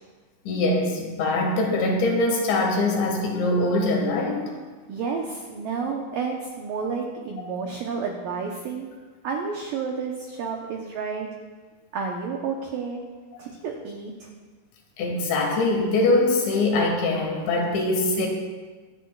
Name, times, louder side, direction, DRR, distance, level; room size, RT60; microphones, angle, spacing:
voice 1, 0.5-4.5 15.0-18.3, left 2 dB, 75° left, 1 dB, 3.9 m, -23 dB
voice 2, 4.9-8.9 9.2-11.3 11.9-13.0 13.4-14.3, right 5 dB, 85° right, 1 dB, 1.9 m, -30 dB
24.5 x 9.3 x 2.4 m, 1.4 s
omnidirectional pair, 5.3 m